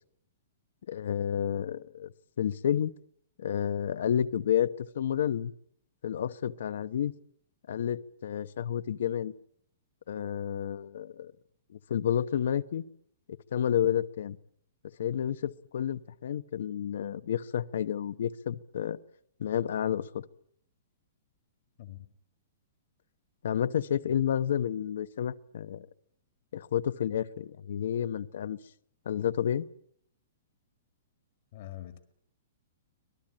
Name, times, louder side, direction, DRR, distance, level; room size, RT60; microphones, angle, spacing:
voice 1, 0.9-2.1 2.4-2.9 3.4-5.5 6.0-7.1 7.7-9.3 10.1-11.3 11.9-12.8 13.5-14.4 15.0-19.0 19.4-20.2 23.4-25.9 26.5-28.6 29.1-29.7, left 9 dB, 65° left, 0.9 m, -30 dB
voice 2, 31.5-32.0, left 13 dB, 45° left, 1.8 m, -43 dB
25.5 x 19.0 x 8.9 m
hypercardioid pair, 170°, 0 cm